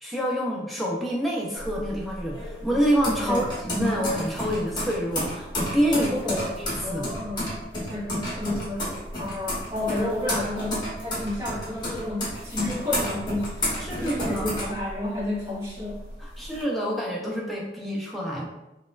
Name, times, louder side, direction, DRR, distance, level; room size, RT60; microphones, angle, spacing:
voice 1, 0.0-6.1 6.6-7.0 13.8-14.5 16.2-18.5, equal, ahead, -3 dB, 0.5 m, -27 dB
sound 1, 1.6-15.4 15.8-16.6, left 1 dB, 25° left, 0.9 m, -31 dB
voice 2, 5.9-6.6 6.8-7.5 7.9-13.6 13.9-16.1, left 1 dB, 15° right, -10 dB, 1.4 m, -30 dB
4.0 x 2.3 x 2.4 m, 0.95 s
head